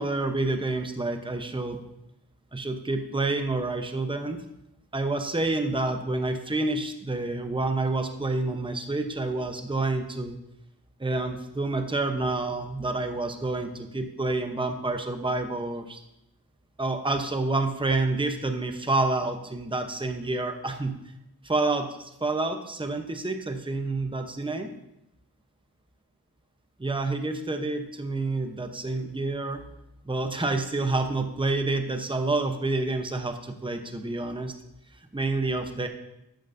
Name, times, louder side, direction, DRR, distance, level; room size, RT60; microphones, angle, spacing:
voice 1, 0.0-1.8 2.5-4.4 4.9-10.4 11.0-16.0 16.8-21.0 21.4-24.7 26.8-29.6 30.0-34.5 35.1-35.9, right 2 dB, 10° right, 6 dB, 0.8 m, -28 dB
12.5 x 9.0 x 2.7 m, 0.86 s
wide cardioid pair, 65°, 40 cm